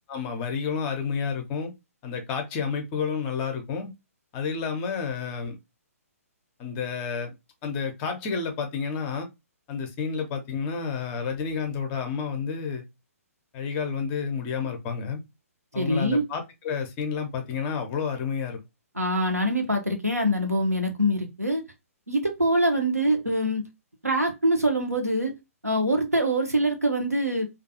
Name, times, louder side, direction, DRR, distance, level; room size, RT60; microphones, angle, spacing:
voice 1, 0.1-1.7 2.0-3.9 4.3-5.6 6.6-7.3 7.6-9.3 9.7-12.8 13.5-15.2 15.7-18.6, left 6 dB, 20° left, 0.5 m, -30 dB
voice 2, 15.7-16.2 19.0-21.6 22.1-23.6 24.0-25.3 25.6-27.4, equal, 90° right, 0.7 m, -24 dB
2.4 x 2.2 x 2.5 m
figure-of-eight pair, 125°, 8 cm